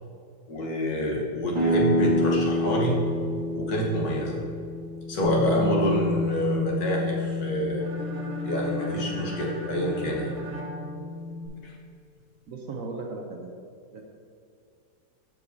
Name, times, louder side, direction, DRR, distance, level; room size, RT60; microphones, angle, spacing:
voice 1, 0.5-3.0 3.5-4.4 5.1-7.8 8.4-10.3 11.6-11.7, equal, 65° left, -2 dB, 1.7 m, -27 dB
sound 1, 1.5-7.1, equal, 15° right, 1.5 m, -28 dB
Bass guitar, 5.2-11.5, left 3 dB, 30° left, 1.2 m, -31 dB
sound 2, 7.8-11.7, equal, 80° right, 1.7 m, -38 dB
voice 2, 12.5-13.5 13.9-14.0, right 3 dB, 65° right, 1 dB, 0.9 m, -36 dB
13.5 x 4.6 x 2.6 m, 2.3 s
omnidirectional pair, 1.8 m